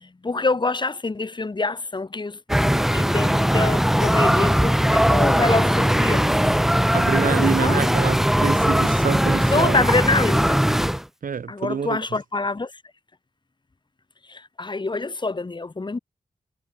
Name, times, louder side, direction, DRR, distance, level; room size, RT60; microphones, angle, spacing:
voice 1, 0.0-2.4 2.9-6.3 7.4-8.0 9.5-10.6 11.5-12.7 14.3-16.0, left 3 dB, 35° left, 2.6 m, -26 dB
sound 1, 2.5-11.0, equal, 5° right, 0.5 m, -19 dB
voice 2, 6.9-9.8 11.2-12.0, right 6 dB, 75° right, 2.3 m, -26 dB
wide cardioid pair, 95°, 14 cm